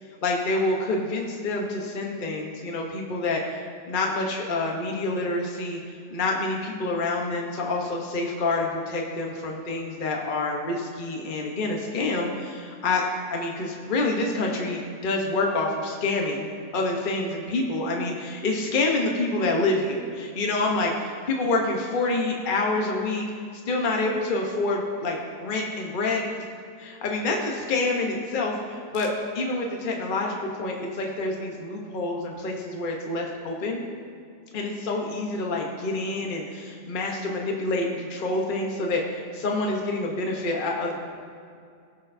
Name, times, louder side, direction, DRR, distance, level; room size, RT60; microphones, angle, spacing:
voice 1, 0.2-3.6 3.9-5.8 6.1-23.2 23.7-26.3 26.8-29.1 29.3-33.8 34.5-40.9, left 2 dB, 40° left, 0 dB, 1.0 m, -27 dB
18.0 x 6.3 x 2.6 m, 2.3 s
omnidirectional pair, 1.5 m